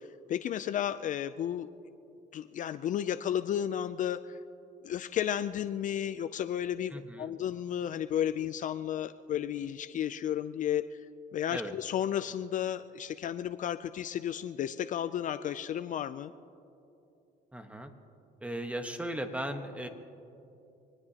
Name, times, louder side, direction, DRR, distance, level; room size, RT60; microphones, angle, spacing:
voice 1, 0.3-1.7 2.3-4.4 4.8-11.0 11.3-16.3, left 10 dB, 50° left, 12 dB, 0.4 m, -33 dB
voice 2, 6.9-7.3 11.5-11.7 17.5-17.9 18.4-19.9, right 1 dB, 10° right, 6 dB, 1.3 m, -37 dB
25.0 x 19.5 x 2.9 m, 2.8 s
cardioid pair, 110°, 17 cm